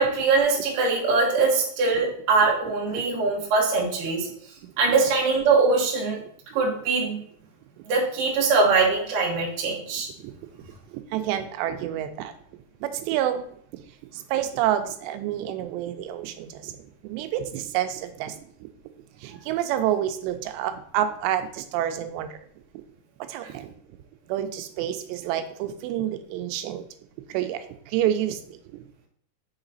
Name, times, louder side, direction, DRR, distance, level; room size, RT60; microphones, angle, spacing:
voice 1, 0.0-4.3 4.8-6.2 6.5-7.2 7.9-10.1, right 4 dB, 70° right, -2 dB, 2.2 m, -22 dB
voice 2, 10.9-12.3 12.8-13.5 13.7-13.8 14.1-16.8 17.0-18.7 19.2-22.4 22.7-22.8 23.2-23.7 24.3-26.9 27.3-28.8, right 11 dB, 85° right, 8 dB, 2.8 m, -28 dB
6.6 x 4.0 x 3.9 m, 0.62 s
omnidirectional pair, 4.9 m